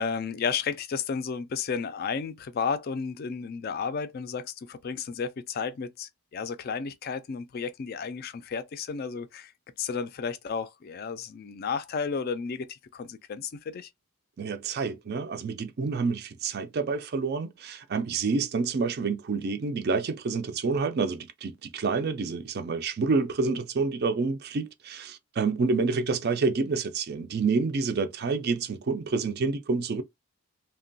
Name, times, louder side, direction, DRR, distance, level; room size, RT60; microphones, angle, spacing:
voice 1, 0.0-9.5 9.8-13.9, left 5 dB, 45° left, 0.3 m, -32 dB
voice 2, 14.4-30.0, right 4 dB, 45° right, 0.4 m, -28 dB
2.9 x 2.2 x 2.6 m
head